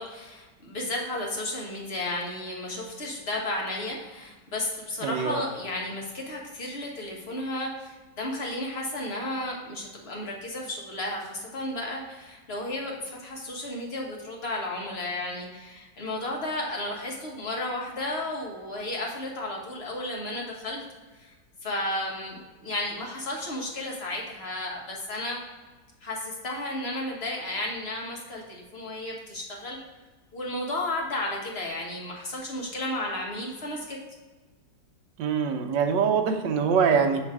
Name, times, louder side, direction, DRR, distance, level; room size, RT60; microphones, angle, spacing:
voice 1, 0.0-20.8 21.1-21.3 21.6-25.4 26.0-29.8 30.3-34.0, left 1 dB, 35° left, -1 dB, 1.3 m, -33 dB
voice 2, 5.0-5.4 35.2-37.2, right 6 dB, 75° right, 4 dB, 1.3 m, -24 dB
7.9 x 3.3 x 4.6 m, 1.3 s
omnidirectional pair, 2.0 m